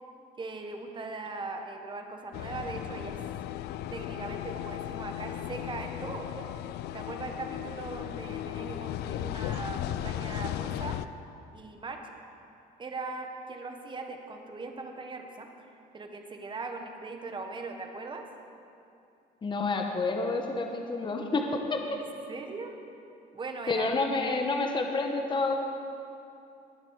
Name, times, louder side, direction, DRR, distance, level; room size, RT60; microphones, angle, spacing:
voice 1, 0.4-3.2 3.9-6.5 6.9-11.0 11.5-12.1 12.8-18.3 21.9-22.0 22.3-22.8 23.3-23.9, right 3 dB, 30° right, 4 dB, 1.4 m, -40 dB
sound 1, 2.3-11.1, left 12 dB, 75° left, 0.5 m, -36 dB
voice 2, 19.4-21.4 21.7-22.0 23.7-25.6, left 3 dB, 30° left, 3 dB, 1.2 m, -29 dB
20.5 x 7.5 x 4.8 m, 2.7 s
cardioid pair, 110°, 17 cm